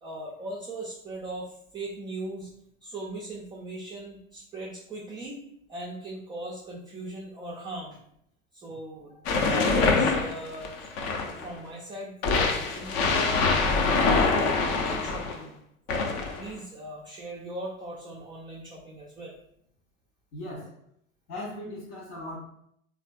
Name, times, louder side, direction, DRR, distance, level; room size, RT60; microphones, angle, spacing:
voice 1, 0.0-2.5 2.8-5.4 5.7-8.0 8.5-9.2 9.5-10.7 11.4-13.4 14.0-15.6 15.9-19.3, right 1 dB, 10° right, -3 dB, 0.3 m, -39 dB
sound 1, 9.3-11.5 12.2-15.4 15.9-16.5, left 4 dB, 40° left, 0.5 m, -24 dB
voice 2, 20.3-20.7 21.3-22.4, left 1 dB, 60° left, -5 dB, 0.9 m, -38 dB
3.3 x 2.5 x 2.2 m, 0.70 s
hypercardioid pair, 90°, 41 cm